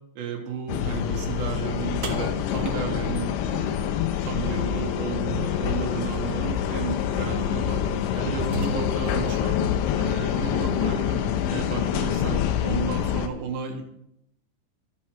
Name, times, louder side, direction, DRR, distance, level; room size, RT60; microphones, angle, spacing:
voice 1, 0.2-7.8 8.1-9.6 10.0-13.8, right 6 dB, 85° right, 2 dB, 3.8 m, -33 dB
sound 1, 0.7-13.3, left 9 dB, 80° left, 2.9 m, -26 dB
sound 2, 2.0-4.2 6.1-6.2 7.0-7.2 7.7-9.2, right 4 dB, 60° right, 1.3 m, -36 dB
14.0 x 6.4 x 4.6 m, 0.77 s
omnidirectional pair, 5.0 m